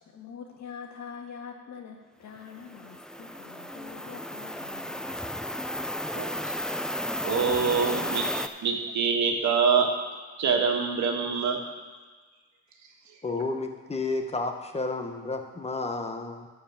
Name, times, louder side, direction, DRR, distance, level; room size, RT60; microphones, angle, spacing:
voice 1, 0.0-5.2, left 6 dB, 65° left, 1 dB, 1.8 m, -44 dB
sound 1, 2.6-8.5, equal, ahead, 0.5 m, -33 dB
voice 2, 7.2-8.3 8.6-9.9 10.4-11.6, right 5 dB, 70° right, 2 dB, 1.7 m, -25 dB
voice 3, 13.2-16.5, left 3 dB, 20° left, 5 dB, 1.2 m, -31 dB
12.5 x 4.8 x 7.5 m, 1.4 s
cardioid pair, 90°, 30 cm